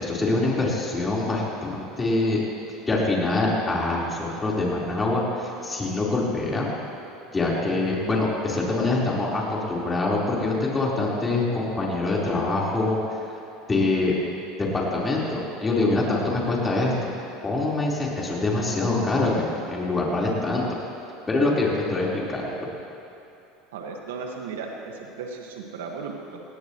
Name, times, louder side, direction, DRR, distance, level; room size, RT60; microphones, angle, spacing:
voice 1, 0.0-2.4 2.9-6.7 7.3-13.0 13.2-13.3 13.7-14.1 14.6-16.9 17.4-20.6 21.3-22.7, left 2 dB, 20° left, -5 dB, 4.4 m, -24 dB
voice 2, 23.7-26.4, right 5 dB, 90° right, 0 dB, 1.8 m, -35 dB
20.0 x 17.0 x 3.2 m, 2.9 s
supercardioid pair, 100°, 0 cm